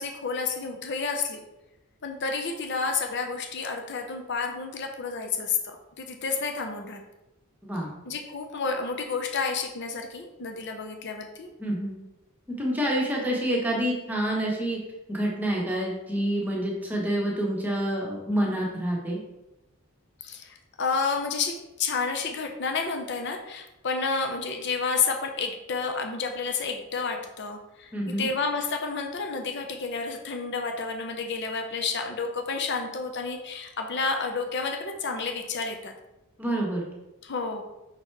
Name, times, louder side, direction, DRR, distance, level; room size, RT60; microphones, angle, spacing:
voice 1, 0.0-1.4 2.0-7.0 8.0-11.5 20.2-35.9 37.2-37.6, left 4 dB, 55° left, 4 dB, 0.7 m, -30 dB
voice 2, 7.6-7.9 11.6-12.0 12.6-14.8 15.1-19.2 27.9-28.3 36.4-36.9, right 1 dB, 10° right, -3 dB, 1.2 m, -27 dB
5.6 x 4.0 x 4.6 m, 0.96 s
head